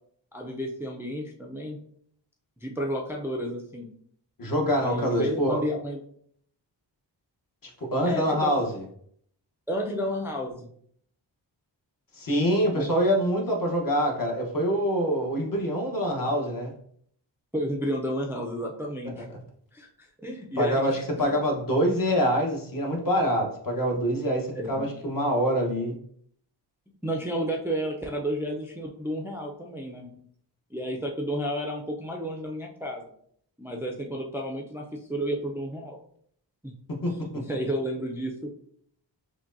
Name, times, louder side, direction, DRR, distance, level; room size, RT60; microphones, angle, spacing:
voice 1, 0.3-1.8 2.6-3.9 4.8-6.0 8.0-8.5 9.7-10.7 12.7-12.9 17.5-19.3 19.7-21.4 24.6-24.8 27.0-30.1 30.7-33.1 33.6-36.0 36.6-36.7 37.2-38.5, equal, 5° right, 0 dB, 0.5 m, -32 dB
voice 2, 4.4-5.6 7.6-8.8 12.1-16.7 19.1-19.2 20.6-25.9 37.0-37.1, equal, 45° left, 0 dB, 1.1 m, -25 dB
5.9 x 2.2 x 2.6 m, 0.64 s
wide cardioid pair, 70°, 46 cm